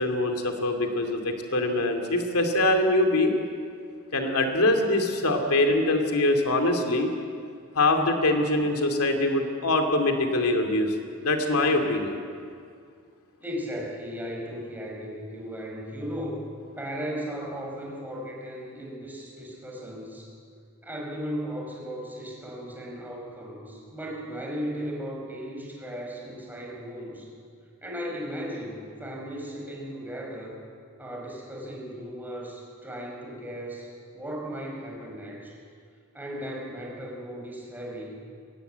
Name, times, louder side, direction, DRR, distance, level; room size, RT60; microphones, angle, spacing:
voice 1, 0.0-3.3 4.1-7.1 7.7-10.9 11.2-12.2, left 2 dB, 85° left, 4 dB, 2.5 m, -23 dB
voice 2, 13.4-16.4 16.8-20.3 20.8-27.2 27.8-30.5 31.0-33.9 34.1-35.5 36.1-38.1, equal, 10° right, -2 dB, 5.2 m, -36 dB
22.5 x 18.5 x 8.1 m, 2.2 s
head